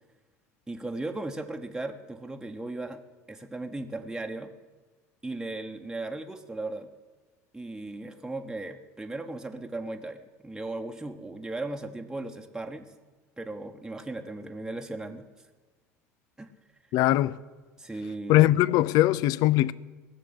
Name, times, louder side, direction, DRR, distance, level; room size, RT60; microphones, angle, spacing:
voice 1, 0.7-3.0 3.3-4.5 5.2-6.9 7.5-12.9 13.4-15.3 16.4-16.5 16.9-17.0 17.8-18.6, right 2 dB, 5° right, 1.1 m, -37 dB
voice 2, 16.9-17.4 18.3-19.7, left 15 dB, 50° left, 0.5 m, -21 dB
17.5 x 7.3 x 9.7 m
figure-of-eight pair, 65°, 8 cm